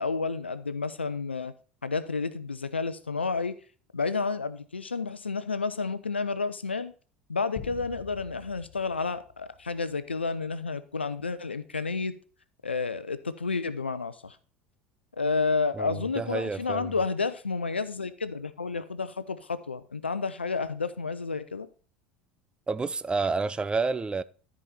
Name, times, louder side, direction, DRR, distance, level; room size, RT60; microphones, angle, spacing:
voice 1, 0.0-1.5 1.8-3.5 3.9-6.9 7.3-12.2 12.6-14.4 15.2-21.7, left 4 dB, 80° left, 0.7 m, -30 dB
sound 1, 7.6-10.1, left 7 dB, 45° left, 1.9 m, -46 dB
voice 2, 15.7-16.9 22.7-24.2, right 4 dB, 15° right, 0.5 m, -29 dB
13.5 x 5.0 x 4.2 m
figure-of-eight pair, 70°, 6 cm